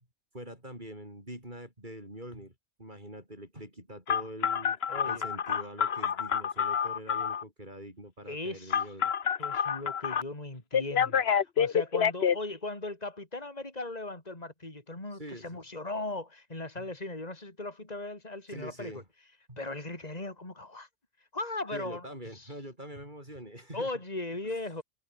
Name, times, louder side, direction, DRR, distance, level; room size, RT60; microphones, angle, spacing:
voice 1, 0.3-2.5 2.8-4.8 5.0-9.1 15.2-15.6 16.8-16.9 18.5-19.0 19.5-19.6 21.7-23.9, right 1 dB, 35° right, 8.3 m, -44 dB
Telephone, 4.1-7.4 8.7-10.2 10.7-12.4, left 7 dB, 55° left, 1.2 m, -27 dB
voice 2, 4.9-5.3 8.3-8.8 9.4-19.0 19.6-20.9 21.2-22.0 22.3-22.5 23.7-24.8, left 2 dB, 30° left, 4.3 m, -38 dB
omnidirectional pair, 1.4 m